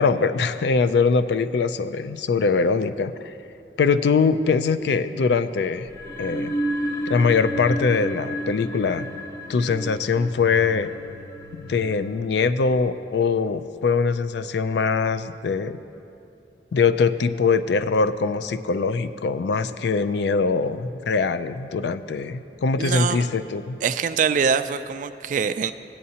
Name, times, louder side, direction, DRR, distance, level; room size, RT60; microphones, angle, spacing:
voice 1, 0.0-3.4 3.8-5.9 6.2-6.5 7.1-9.1 9.5-10.9 11.5-15.8 16.7-23.8, left 4 dB, 70° left, 12 dB, 0.4 m, -22 dB
sound 1, 5.9-12.8, equal, 20° left, 0.8 m, -32 dB
voice 2, 22.8-23.2 23.8-25.7, right 6 dB, 45° right, 11 dB, 0.3 m, -23 dB
15.5 x 8.5 x 2.8 m, 2.6 s
head